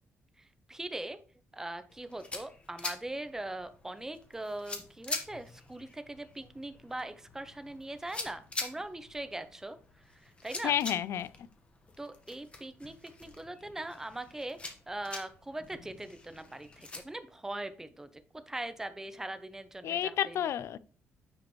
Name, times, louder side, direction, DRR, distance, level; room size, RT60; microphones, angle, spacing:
voice 1, 0.4-1.2 1.5-9.8 10.0-10.8 12.0-18.1 18.3-20.5, right 1 dB, 10° right, 0.6 m, -41 dB
sound 1, 1.9-17.0, left 3 dB, 20° left, 1.3 m, -45 dB
voice 2, 10.6-11.3 19.8-20.8, left 10 dB, 60° left, 0.4 m, -30 dB
9.3 x 5.0 x 3.1 m
cardioid pair, 150°, 5 cm